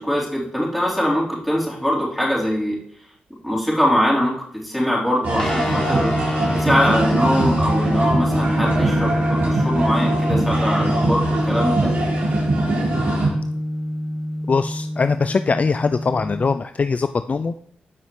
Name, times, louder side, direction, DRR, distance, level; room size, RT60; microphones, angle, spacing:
voice 1, 0.0-2.8 3.4-6.1 6.5-11.9, equal, ahead, -5 dB, 3.9 m, -22 dB
sound 1, 5.2-13.3, right 2 dB, 65° right, 4.3 m, -23 dB
sound 2, 5.4-16.6, left 1 dB, 20° left, 1.2 m, -24 dB
sound 3, 8.4-11.1, right 2 dB, 45° right, 2.5 m, -34 dB
voice 2, 14.5-17.5, left 4 dB, 40° left, 11 dB, 0.3 m, -21 dB
14.0 x 5.5 x 3.2 m, 0.66 s
supercardioid pair, 50°, 4 cm